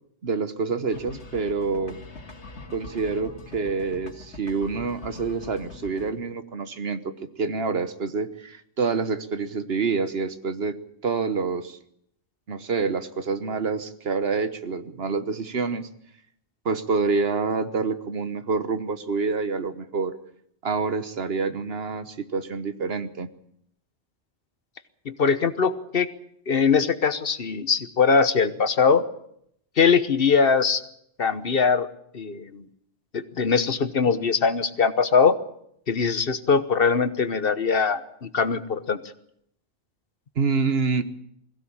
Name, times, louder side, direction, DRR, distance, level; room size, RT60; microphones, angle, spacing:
voice 1, 0.2-2.0 2.7-11.8 12.5-15.9 16.6-20.1 20.6-23.3 40.4-41.0, right 4 dB, 60° right, 11 dB, 1.4 m, -27 dB
sound 1, 0.9-6.1, left 3 dB, 85° left, 2.4 m, -43 dB
voice 2, 25.1-26.1 26.5-29.0 29.8-30.8 31.2-31.9 32.1-32.6 33.1-35.4 35.9-39.0, left 5 dB, 55° left, 12 dB, 1.2 m, -21 dB
21.5 x 16.0 x 8.7 m, 0.72 s
omnidirectional pair, 1.1 m